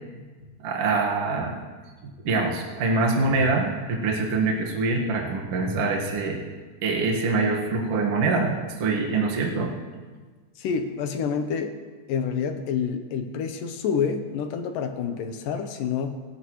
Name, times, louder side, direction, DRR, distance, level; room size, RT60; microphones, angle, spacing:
voice 1, 0.6-1.5 2.0-6.4 6.8-9.8, right 3 dB, 50° right, -1 dB, 2.2 m, -24 dB
voice 2, 10.6-11.8 12.1-16.1, left 6 dB, 75° left, 7 dB, 2.5 m, -28 dB
23.5 x 12.5 x 3.1 m, 1.4 s
omnidirectional pair, 4.0 m